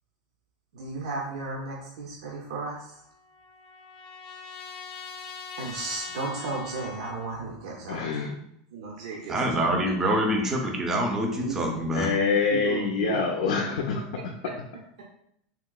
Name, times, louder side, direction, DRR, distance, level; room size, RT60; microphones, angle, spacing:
voice 1, 0.7-3.0 5.6-8.0 8.7-10.2 11.4-11.6 12.5-13.5, right 4 dB, 80° right, -3 dB, 0.6 m, -35 dB
Trumpet, 2.6-7.4, left 6 dB, 40° left, 0.6 m, -42 dB
voice 2, 7.9-8.3 11.9-14.0, left 5 dB, 85° left, 1 dB, 0.4 m, -25 dB
voice 3, 9.3-12.1, right 1 dB, 15° right, 1 dB, 0.5 m, -25 dB
3.6 x 2.8 x 2.3 m, 0.73 s
supercardioid pair, 165°, 3 cm